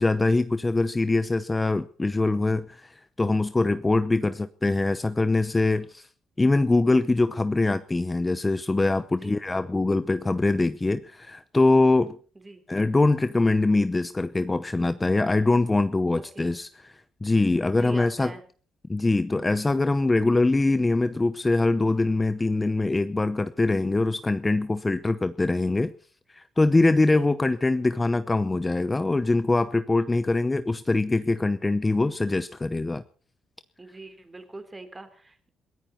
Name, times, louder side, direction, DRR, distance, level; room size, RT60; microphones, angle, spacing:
voice 1, 0.0-6.1 6.4-12.2 12.7-18.3 18.9-25.9 26.3-33.0, left 2 dB, 20° left, 13 dB, 0.8 m, -23 dB
voice 2, 16.1-16.5 17.8-18.4 27.1-27.3 33.8-35.5, right 2 dB, 20° right, 9 dB, 3.5 m, -42 dB
22.5 x 15.0 x 4.3 m, 0.41 s
cardioid pair, 90°, 0 cm